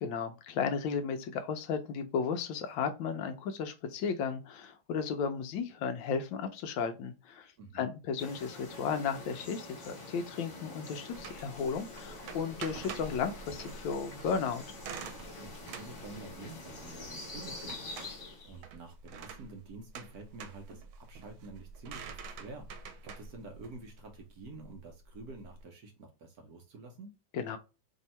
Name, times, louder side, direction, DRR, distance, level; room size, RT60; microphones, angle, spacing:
voice 1, 0.0-14.6 27.3-27.6, left 6 dB, 75° left, 1.2 m, -34 dB
voice 2, 7.6-7.9 15.4-17.8 18.0-27.2, right 3 dB, 60° right, 1.0 m, -49 dB
sound 1, 8.2-18.6, left 2 dB, 45° left, 1.2 m, -46 dB
sound 2, 11.1-25.6, right 5 dB, 90° right, 1.5 m, -47 dB
3.4 x 2.7 x 4.2 m
omnidirectional pair, 2.3 m